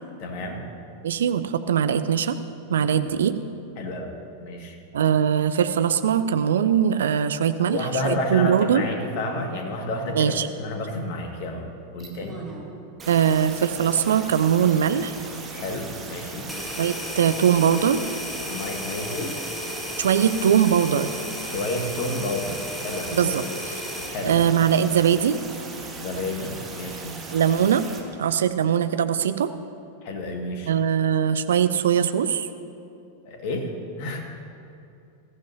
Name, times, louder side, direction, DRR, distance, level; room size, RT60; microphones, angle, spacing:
voice 1, 0.2-0.7 3.0-3.1 3.8-4.8 7.6-12.4 15.5-16.5 18.5-19.4 21.4-23.3 24.1-24.4 25.9-27.2 30.0-30.7 33.3-33.7 34.0-34.2, left 1 dB, 45° left, 2 dB, 2.0 m, -30 dB
voice 2, 1.0-2.4 2.7-3.3 4.9-7.8 8.0-8.8 10.1-10.5 13.1-15.1 16.8-18.0 20.0-21.1 23.1-23.7 24.3-25.4 27.3-27.8 28.2-29.5 30.7-32.5, right 8 dB, 65° right, 11 dB, 0.6 m, -21 dB
sound 1, 12.0-12.7 13.0-28.0, right 3 dB, 20° right, 2.1 m, -38 dB
sound 2, 16.5-24.2, left 1 dB, 5° left, 2.2 m, -34 dB
20.0 x 14.5 x 2.8 m, 2.6 s
figure-of-eight pair, 90°, 0 cm